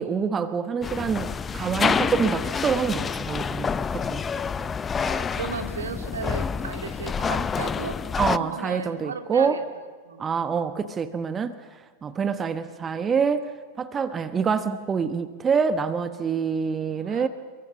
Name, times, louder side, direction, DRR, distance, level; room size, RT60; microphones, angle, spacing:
voice 1, 0.0-4.2 8.2-9.6 10.2-11.5 12.0-13.5 13.8-17.3, right 6 dB, 20° right, 11 dB, 1.2 m, -26 dB
sound 1, 0.8-8.4, left 6 dB, 20° left, 0.7 m, -28 dB
voice 2, 4.9-8.0 8.4-9.6 10.0-10.7 16.9-17.3, right 5 dB, 70° right, 5 dB, 2.7 m, -35 dB
29.0 x 22.5 x 7.2 m, 1.5 s
figure-of-eight pair, 90°, 0 cm